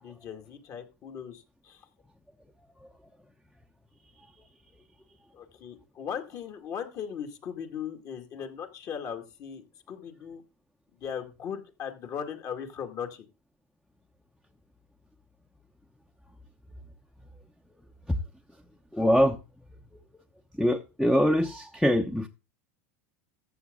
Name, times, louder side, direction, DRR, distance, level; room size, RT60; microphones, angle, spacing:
voice 1, 0.0-1.8 5.3-10.4 11.0-13.3, left 8 dB, 45° left, 2.2 m, -38 dB
voice 2, 18.9-19.4 20.6-22.3, equal, 5° left, 0.8 m, -23 dB
14.0 x 6.9 x 3.8 m
hypercardioid pair, 100°, 8 cm